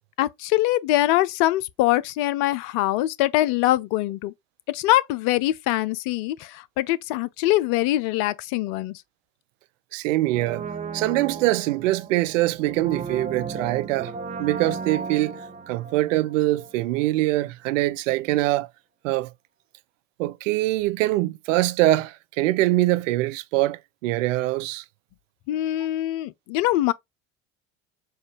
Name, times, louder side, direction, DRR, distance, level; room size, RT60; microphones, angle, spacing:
voice 1, 0.2-4.3 4.7-9.0 25.5-26.9, left 15 dB, 55° left, 0.6 m, -23 dB
voice 2, 9.9-10.7 10.9-14.1 14.4-15.4 15.7-18.7 19.0-19.3 20.2-24.8, right 17 dB, 70° right, 0.5 m, -23 dB
Brass instrument, 10.3-17.1 17.4-17.5, right 5 dB, 20° right, 0.7 m, -35 dB
4.3 x 2.4 x 3.3 m
hypercardioid pair, 75°, 40 cm